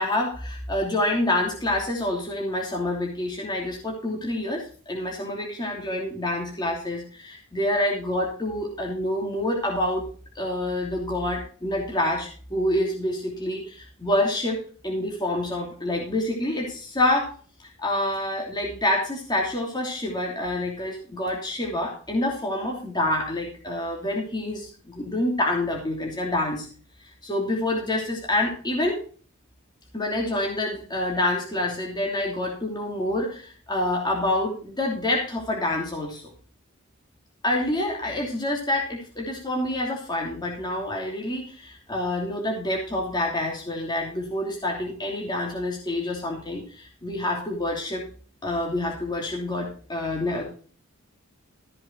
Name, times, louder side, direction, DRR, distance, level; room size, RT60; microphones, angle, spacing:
voice 1, 0.0-10.0 10.3-17.3 17.6-26.7 27.2-29.0 29.9-36.3 37.4-48.0 48.4-50.4, left 1 dB, 20° left, -1 dB, 2.9 m, -27 dB
14.0 x 7.6 x 4.4 m, 0.42 s
head